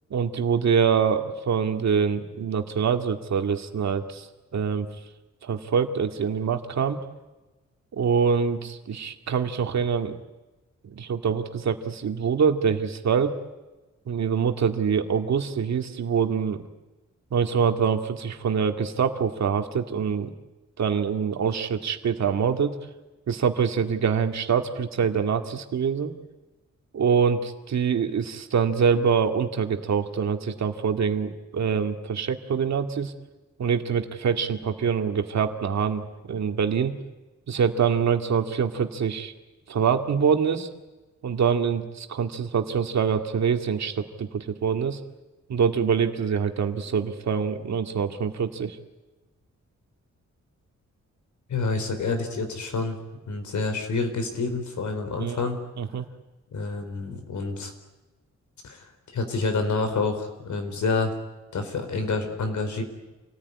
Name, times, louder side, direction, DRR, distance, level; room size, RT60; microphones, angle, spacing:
voice 1, 0.1-4.3 4.5-4.9 5.4-7.0 7.9-10.1 10.8-13.3 14.1-16.6 17.3-20.3 20.8-22.7 23.3-26.1 26.9-33.1 33.6-36.9 37.5-39.3 39.7-40.7 41.2-45.0 45.5-48.8 55.2-55.4 55.8-56.0, right 6 dB, 65° right, 5 dB, 2.2 m, -25 dB
voice 2, 51.5-53.0 53.3-55.6 56.5-57.7 58.6-61.2 61.5-62.8, left 3 dB, 80° left, 6 dB, 4.5 m, -28 dB
28.0 x 19.0 x 9.8 m, 1.1 s
wide cardioid pair, 180°, 29 cm